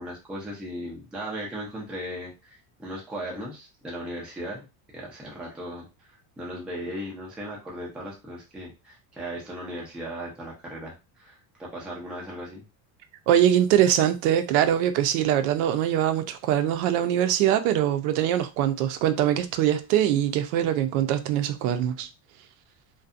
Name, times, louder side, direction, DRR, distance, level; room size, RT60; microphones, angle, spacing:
voice 1, 0.0-4.6 4.9-12.6, equal, 5° right, 0.3 m, -37 dB
voice 2, 13.3-22.1, right 11 dB, 80° right, 0.5 m, -23 dB
2.6 x 2.2 x 2.4 m
cardioid pair, 155°, 43 cm